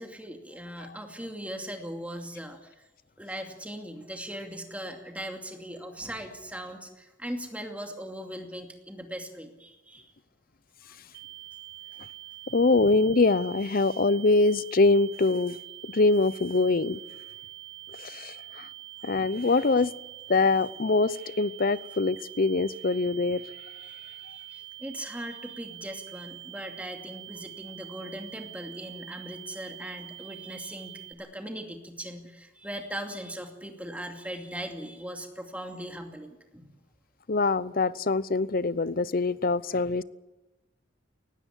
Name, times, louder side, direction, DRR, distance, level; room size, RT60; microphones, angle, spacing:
voice 1, 0.0-2.8 3.2-10.1 10.9-11.0 23.8-36.7, equal, 5° right, 2.5 m, -39 dB
sound 1, 11.1-31.1, right 15 dB, 55° right, 2.4 m, -45 dB
voice 2, 12.5-15.6 15.8-17.0 18.0-18.7 19.0-19.9 20.3-23.4 37.3-40.0, left 3 dB, 50° left, 0.7 m, -24 dB
19.5 x 16.0 x 9.9 m
head